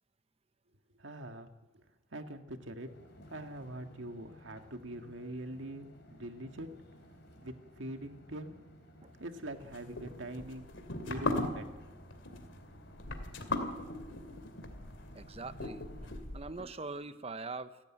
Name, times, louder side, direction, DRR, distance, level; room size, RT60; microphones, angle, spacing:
voice 1, 1.0-1.5 2.1-2.9 3.3-6.7 7.4-8.6 9.2-10.7 11.0-11.6, right 1 dB, 90° right, 6 dB, 1.9 m, -43 dB
sound 1, 2.8-16.1, equal, 60° left, 4.8 m, -56 dB
sound 2, 9.6-16.6, left 2 dB, 90° left, 2.6 m, -38 dB
voice 2, 15.1-17.8, right 3 dB, 35° right, 12 dB, 0.9 m, -43 dB
29.5 x 12.5 x 9.0 m, 1.1 s
head